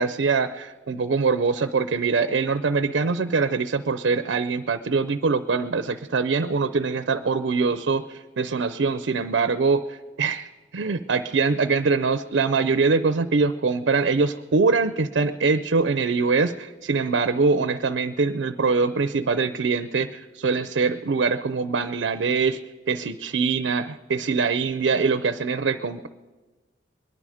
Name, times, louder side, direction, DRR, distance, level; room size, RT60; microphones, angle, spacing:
voice 1, 0.0-22.6 22.9-26.1, right 4 dB, 75° right, 10 dB, 0.5 m, -23 dB
22.5 x 10.5 x 4.9 m, 1.3 s
head